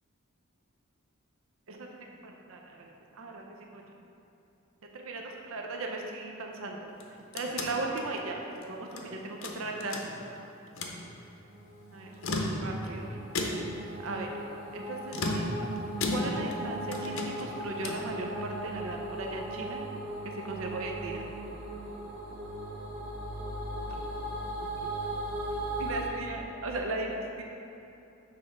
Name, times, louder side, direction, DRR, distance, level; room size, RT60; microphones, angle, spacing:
voice 1, 2.2-3.8 4.9-6.8 7.3-8.4 8.7-10.1 11.9-12.1 12.6-13.2 14.0-14.3 14.7-15.7 16.1-19.8 20.3-21.2 23.9-24.0 24.6-24.7 25.8-27.4, right 2 dB, 70° right, 1 dB, 0.6 m, -37 dB
sound 1, 6.9-9.1 9.4-10.4 10.7-11.0 12.1-12.9 13.3-13.9 15.1-16.6 16.9-18.1, left 2 dB, 70° left, 0.7 m, -34 dB
sound 2, 11.2-26.1, right 1 dB, 50° right, 1.3 m, -38 dB
6.7 x 3.4 x 5.2 m, 2.8 s
head